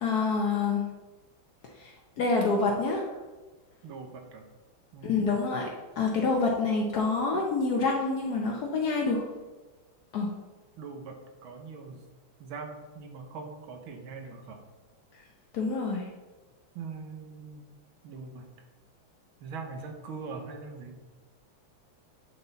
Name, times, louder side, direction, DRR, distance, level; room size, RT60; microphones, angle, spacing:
voice 1, 0.0-0.8 1.8-3.0 5.0-5.7 6.0-9.2 10.1-10.3 15.5-16.1, left 4 dB, 65° left, 0 dB, 1.0 m, -27 dB
voice 2, 3.8-4.5 4.9-5.1 10.8-12.0 12.4-14.6 16.7-17.7 18.0-18.5 19.4-21.0, right 4 dB, 75° right, 4 dB, 1.6 m, -42 dB
8.1 x 4.1 x 3.9 m, 1.3 s
omnidirectional pair, 2.3 m